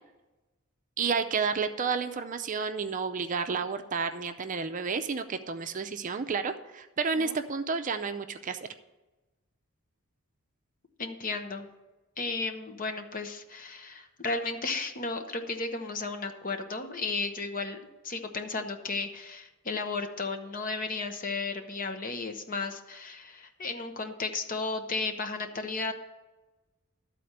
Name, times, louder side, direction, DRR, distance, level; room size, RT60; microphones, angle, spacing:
voice 1, 1.0-8.6, right 5 dB, 35° right, 8 dB, 0.5 m, -31 dB
voice 2, 11.0-11.7 12.2-17.8 18.0-25.9, left 3 dB, 40° left, 6 dB, 0.9 m, -34 dB
12.5 x 4.3 x 8.0 m, 1.1 s
head